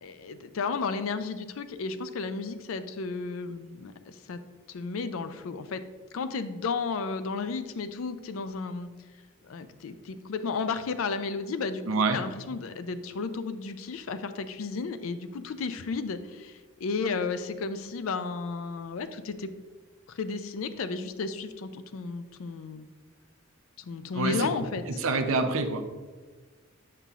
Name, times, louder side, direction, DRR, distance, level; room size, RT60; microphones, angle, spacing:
voice 1, 0.0-4.4 4.7-5.8 6.1-8.9 9.4-11.8 12.1-19.5 20.1-22.9 23.8-25.0, left 4 dB, 75° left, 11 dB, 0.4 m, -33 dB
voice 2, 11.9-12.2 24.1-24.5 25.0-25.8, right 3 dB, 70° right, 6 dB, 0.6 m, -26 dB
6.8 x 5.7 x 2.4 m, 1.4 s
head